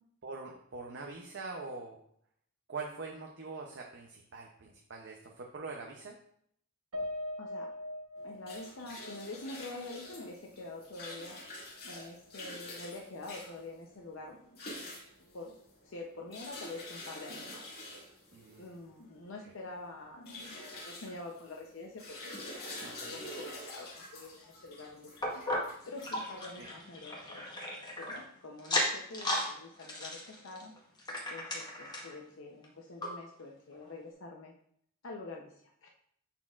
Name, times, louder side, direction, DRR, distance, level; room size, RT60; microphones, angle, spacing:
voice 1, 0.2-2.0 2.7-6.2 18.3-18.7 22.8-23.1 26.6-26.7, right 4 dB, 50° right, 0 dB, 0.6 m, -43 dB
Piano, 6.9-11.4 11.8-11.9 12.3-12.5, left 1 dB, 85° right, 1.1 m, -43 dB
voice 2, 7.4-7.7 8.2-11.4 11.8-14.6 15.3-17.6 18.6-25.4 25.9-27.6 28.0-30.7 31.3-34.5 35.0-35.9, left 2 dB, 60° left, 0 dB, 0.7 m, -46 dB
sound 1, 8.2-26.7, left 1 dB, 45° left, 2.2 m, -47 dB
sound 2, 25.2-28.2 28.6-29.5 29.8-32.2 32.6-32.7 33.0-33.1 33.7-33.8, left 1 dB, 20° left, 1.0 m, -35 dB
9.5 x 4.3 x 2.4 m, 0.68 s
head